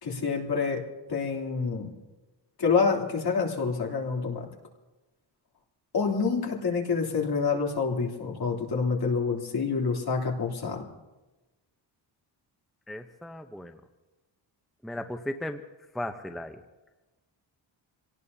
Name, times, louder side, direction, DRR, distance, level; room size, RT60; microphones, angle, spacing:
voice 1, 0.0-0.8 1.1-1.9 2.6-4.5 5.9-10.9, left 5 dB, 55° left, 0 dB, 3.2 m, -27 dB
voice 2, 12.9-13.8 14.8-15.6 15.9-16.6, left 1 dB, ahead, 6 dB, 0.8 m, -36 dB
27.0 x 18.0 x 2.8 m, 1.1 s
cardioid pair, 100°, 46 cm